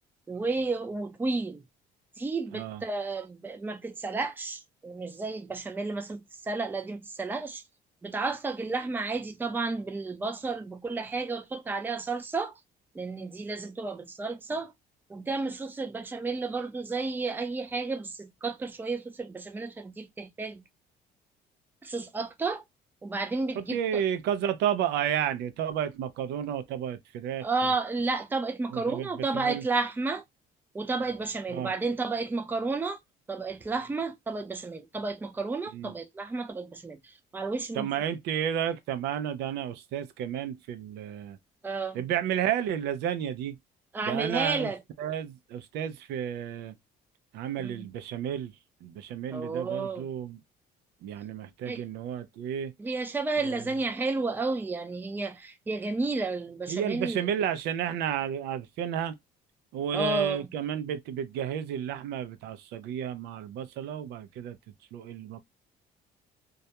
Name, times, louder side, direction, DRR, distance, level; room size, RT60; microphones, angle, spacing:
voice 1, 0.3-1.6 2.2-7.6 8.0-12.5 12.9-14.7 15.1-20.6 21.8-22.6 23.0-24.0 27.4-30.2 30.7-33.0 33.3-37.0 37.3-37.9 41.6-42.0 43.9-44.8 47.6-47.9 49.3-50.0 51.7-51.8 52.8-57.3 59.9-60.4, right 3 dB, 10° right, 0.4 m, -32 dB
voice 2, 2.5-2.8 23.5-27.7 28.7-29.7 31.5-31.7 35.7-35.9 37.7-41.4 41.9-43.6 44.0-44.7 45.0-46.7 47.3-48.5 48.8-50.4 51.0-52.7 53.4-53.7 56.7-59.1 59.7-64.6 64.9-65.4, right 9 dB, 80° right, 0.4 m, -32 dB
2.3 x 2.1 x 2.8 m
cardioid pair, 110°, 17 cm